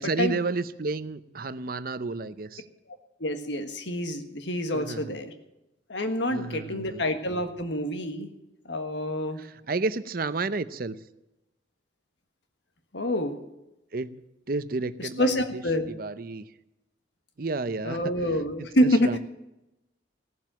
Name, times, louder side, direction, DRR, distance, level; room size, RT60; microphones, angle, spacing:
voice 1, 0.0-2.6 4.7-5.2 6.3-7.0 9.4-11.0 13.9-14.1 14.5-15.6 15.9-16.5 17.4-18.1 18.8-19.2, right 3 dB, 50° right, 14 dB, 0.6 m, -31 dB
voice 2, 3.2-5.3 5.9-8.3 8.6-9.4 12.9-13.3 15.2-15.9 17.8-19.1, equal, 70° left, 7 dB, 1.6 m, -27 dB
16.5 x 7.4 x 8.9 m, 0.94 s
head